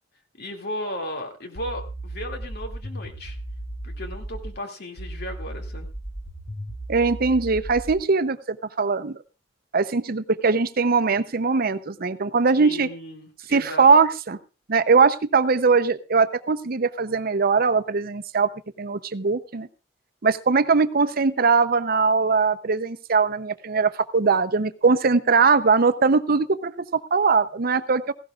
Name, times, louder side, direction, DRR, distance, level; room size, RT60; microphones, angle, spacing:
voice 1, 0.4-3.4 3.8-5.9 12.6-13.8, left 1 dB, 60° left, 3 dB, 2.5 m, -35 dB
sound 1, 1.5-4.6 5.0-8.0, right 1 dB, 75° left, 6.0 m, -35 dB
voice 2, 6.9-9.1 9.7-12.9 13.5-14.4 14.7-18.5 18.8-19.7 20.2-28.1, right 4 dB, 55° right, 12 dB, 0.7 m, -21 dB
17.5 x 16.0 x 2.5 m, 0.31 s
head